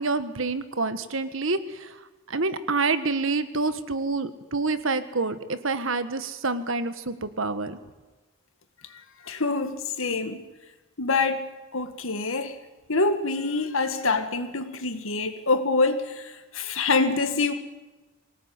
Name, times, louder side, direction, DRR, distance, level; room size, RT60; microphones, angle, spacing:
voice 1, 0.0-1.9 2.3-7.8, right 3 dB, 70° right, 11 dB, 1.5 m, -27 dB
voice 2, 9.3-10.4 11.0-12.6 12.9-17.5, left 3 dB, 70° left, 8 dB, 2.0 m, -26 dB
24.0 x 18.5 x 9.7 m, 1.2 s
head